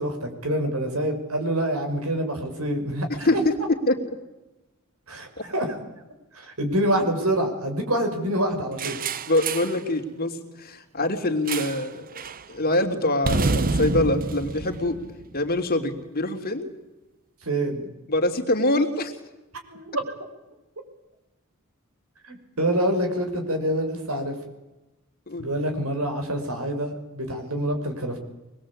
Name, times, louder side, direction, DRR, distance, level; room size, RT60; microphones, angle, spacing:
voice 1, 0.0-3.3 5.1-5.8 6.3-9.0 17.4-17.9 19.7-20.1 22.2-24.3 25.4-28.2, right 1 dB, 75° right, 5 dB, 6.2 m, -26 dB
sound 1, 8.8-9.8 11.5-11.9 12.2-12.4 13.2-15.6, right 3 dB, 40° right, 0.9 m, -27 dB
voice 2, 9.3-12.2 12.5-15.0 15.3-16.7 18.1-19.1 25.3-25.5, left 1 dB, 45° left, 4 dB, 3.3 m, -24 dB
25.0 x 21.5 x 8.7 m, 1.0 s
head